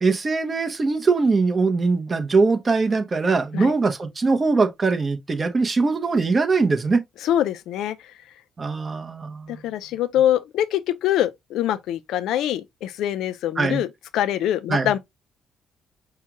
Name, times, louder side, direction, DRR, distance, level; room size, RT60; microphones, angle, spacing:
voice 1, 0.0-7.0 8.6-9.6 13.6-13.8 14.7-14.9, right 4 dB, 30° right, 0.9 m, -21 dB
voice 2, 7.2-8.0 9.5-13.9 14.1-15.0, left 11 dB, 85° left, 0.5 m, -24 dB
5.6 x 2.3 x 2.9 m
cardioid pair, 110°, 0 cm